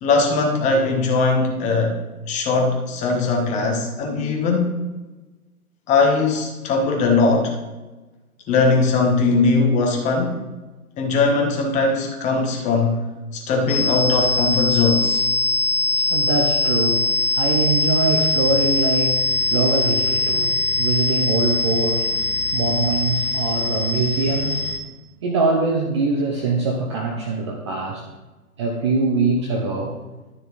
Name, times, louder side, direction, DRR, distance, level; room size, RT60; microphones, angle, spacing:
voice 1, 0.0-2.0 2.3-4.8 5.9-7.5 8.5-10.4 11.0-13.0 13.3-15.3, left 3 dB, 15° left, 1 dB, 1.3 m, -20 dB
sound 1, 13.7-24.8, left 2 dB, 60° left, 1.8 m, -22 dB
voice 2, 15.5-24.7 25.2-28.0 28.6-29.9, right 3 dB, 20° right, 0 dB, 0.6 m, -23 dB
12.0 x 6.5 x 4.1 m, 1.2 s
figure-of-eight pair, 130°, 45 cm